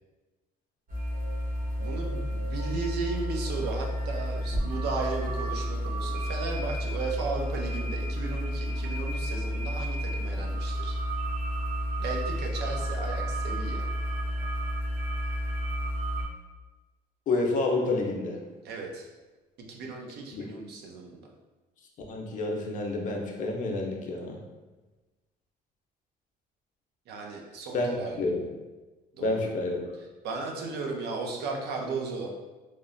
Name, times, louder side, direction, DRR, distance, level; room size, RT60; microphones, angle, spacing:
sound 1, 0.9-16.3, equal, 55° right, 0.9 m, -31 dB
voice 1, 1.8-11.0 12.0-13.8 18.6-19.1 19.7-21.2 27.1-28.3 29.1-29.5 30.2-32.3, right 3 dB, 75° right, 0 dB, 0.5 m, -35 dB
voice 2, 17.3-18.4 20.3-20.5 22.1-24.4 27.7-28.4 29.2-29.8, left 2 dB, 50° left, 0 dB, 0.5 m, -29 dB
3.0 x 2.0 x 2.4 m, 1.2 s
cardioid pair, 110°, 17 cm